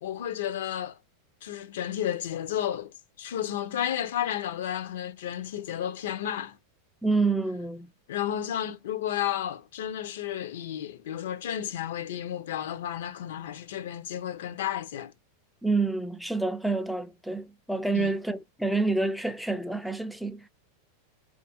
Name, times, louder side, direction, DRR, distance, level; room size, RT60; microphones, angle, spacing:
voice 1, 0.0-1.0 1.4-6.6 8.1-15.1 17.9-18.1, left 10 dB, 75° left, 0.5 m, -32 dB
voice 2, 7.0-7.9 15.6-20.5, right 3 dB, ahead, 0.3 m, -28 dB
2.6 x 2.4 x 2.8 m
hypercardioid pair, 115°, 0 cm